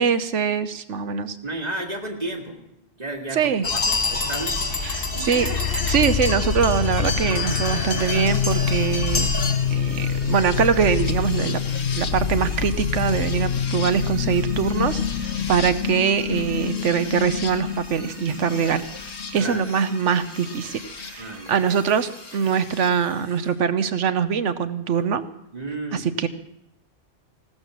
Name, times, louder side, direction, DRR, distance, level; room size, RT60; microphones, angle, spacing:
voice 1, 0.0-1.4 3.3-3.7 4.8-9.3 9.7-11.6 11.9-18.9 19.3-20.8 21.1-25.2 25.9-26.3, right 7 dB, 90° right, 12 dB, 1.2 m, -23 dB
voice 2, 1.4-2.6 3.0-4.6 6.0-6.1 19.4-19.6 21.2-21.6 25.5-26.3, right 1 dB, 35° right, 2 dB, 2.3 m, -32 dB
sound 1, 3.6-9.5, left 3 dB, 55° left, 2.1 m, -27 dB
sound 2, 5.4-21.1 22.3-22.9, left 7 dB, 70° left, 1.2 m, -27 dB
sound 3, 6.8-23.5, equal, 10° right, 6.2 m, -44 dB
16.5 x 13.0 x 6.2 m, 0.80 s
omnidirectional pair, 1.2 m